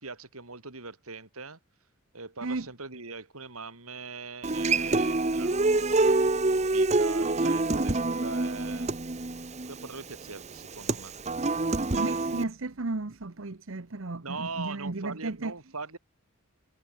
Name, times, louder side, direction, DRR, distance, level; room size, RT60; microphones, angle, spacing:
voice 1, 0.0-1.6 2.1-8.9 9.7-11.1 14.2-16.0, right 4 dB, 80° right, 3.8 m, -41 dB
Human voice / Acoustic guitar, 4.4-12.4, right 2 dB, 30° right, 0.9 m, -26 dB
voice 2, 12.0-15.5, right 3 dB, 60° right, 1.0 m, -34 dB
head